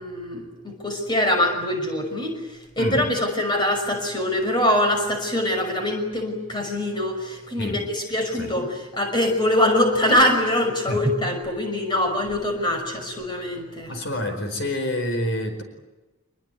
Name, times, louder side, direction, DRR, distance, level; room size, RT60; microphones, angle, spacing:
voice 1, 0.0-13.9, left 1 dB, 20° left, 3 dB, 5.9 m, -23 dB
voice 2, 13.9-15.6, left 1 dB, 60° left, 6 dB, 4.8 m, -27 dB
28.0 x 21.5 x 9.5 m, 1.1 s
head